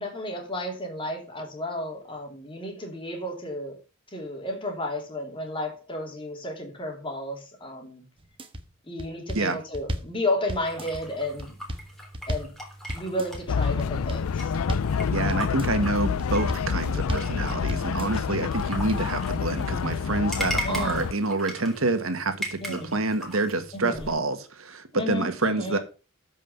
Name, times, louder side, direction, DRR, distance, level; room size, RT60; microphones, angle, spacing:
voice 1, 0.0-3.8 4.1-8.0 8.9-11.5 12.3-12.5 12.9-14.5 20.6-21.1 22.6-22.9 23.7-24.2 24.9-25.8, left 1 dB, 25° left, 3.0 m, -32 dB
sound 1, 8.2-8.6 9.0-10.2 10.5-11.0 11.4-12.6 12.9-13.4 13.8-14.3 14.5-15.0 15.3-15.8 16.2-16.7 16.9-17.4 17.7-18.2 18.6-19.1, equal, 25° right, 1.2 m, -33 dB
sound 2, 10.6-24.1, equal, ahead, 3.4 m, -39 dB
sound 3, 13.5-21.1, left 6 dB, 85° left, 0.4 m, -28 dB
voice 2, 15.1-25.8, right 2 dB, 70° right, 1.5 m, -27 dB
13.5 x 5.5 x 5.7 m
head